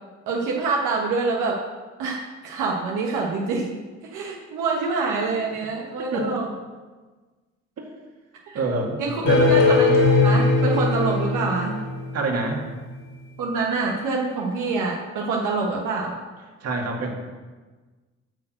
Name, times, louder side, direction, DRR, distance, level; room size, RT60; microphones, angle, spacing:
voice 1, 0.3-1.6 2.0-3.8 4.0-6.5 8.5-8.6 9.0-9.2 9.5-9.9 10.2-11.8 13.4-16.2, right 4 dB, 90° right, -1 dB, 1.2 m, -26 dB
voice 2, 6.1-6.4 7.8-7.9 8.5-9.6 12.1-12.7 16.6-17.1, right 3 dB, 55° right, 1 dB, 2.1 m, -26 dB
sound 1, 9.3-12.3, left 3 dB, 60° left, 3.1 m, -19 dB
10.5 x 4.4 x 7.7 m, 1.3 s
cardioid pair, 90°, 30 cm